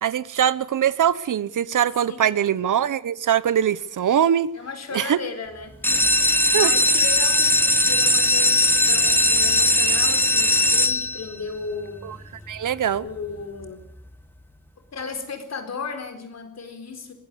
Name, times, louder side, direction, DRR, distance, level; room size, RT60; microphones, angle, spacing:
voice 1, 0.0-4.5 4.9-5.2 6.5-6.7 12.0-12.2 12.5-13.0, right 9 dB, 55° right, 1.1 m, -22 dB
voice 2, 2.1-2.5 4.5-5.7 6.0-12.0 13.0-13.8 14.9-17.1, left 4 dB, 45° left, 4.4 m, -35 dB
sound 1, 5.7-11.4 12.1-12.6 13.0-13.1 13.3-13.4 13.8-13.9, left 1 dB, 5° left, 1.1 m, -19 dB
23.0 x 20.0 x 6.9 m
wide cardioid pair, 175°, 36 cm